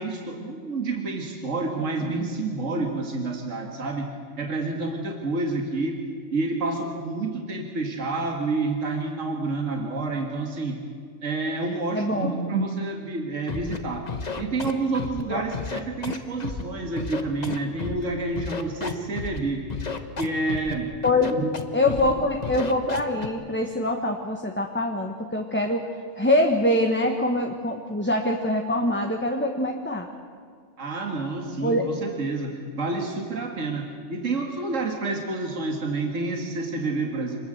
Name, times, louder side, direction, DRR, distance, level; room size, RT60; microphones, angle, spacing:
voice 1, 0.0-6.0 6.3-10.8 11.2-14.1 14.4-19.7 20.2-20.9 21.3-21.5 22.0-22.1 30.8-37.4, right 3 dB, 65° right, 2 dB, 2.3 m, -29 dB
voice 2, 11.9-12.3 15.3-15.4 21.0-21.3 21.7-25.8 26.2-30.1 31.6-31.8, left 1 dB, 10° left, 2 dB, 1.2 m, -24 dB
Scratching (performance technique), 13.5-13.8 14.1-15.2 15.5-16.6 17.0-18.0 18.4-19.4 19.7-20.7 21.0-21.6 21.9-22.1 22.4-23.3, left 4 dB, 35° left, 1.2 m, -32 dB
26.0 x 20.5 x 7.9 m, 2.1 s
omnidirectional pair, 1.4 m